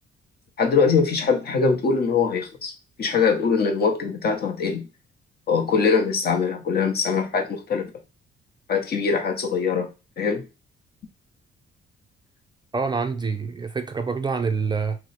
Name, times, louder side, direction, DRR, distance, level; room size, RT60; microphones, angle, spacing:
voice 1, 0.6-2.7 3.0-4.9 5.5-7.9 8.7-9.9 10.2-10.4, left 5 dB, 50° left, 0.9 m, -22 dB
voice 2, 12.7-15.0, right 5 dB, 20° right, 0.3 m, -26 dB
2.9 x 2.1 x 4.1 m
cardioid pair, 90°, 20 cm